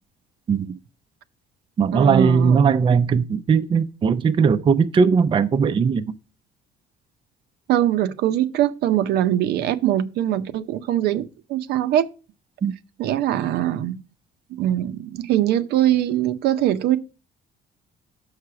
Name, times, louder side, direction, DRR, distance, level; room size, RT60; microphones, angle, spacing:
voice 1, 0.5-0.8 1.8-6.1 12.6-12.7, right 6 dB, 30° right, 0.5 m, -19 dB
voice 2, 1.9-2.6 7.7-12.1 13.0-14.0 14.6-17.0, right 12 dB, 75° right, 0.6 m, -22 dB
6.6 x 4.8 x 5.8 m
cardioid pair, 110°, 17 cm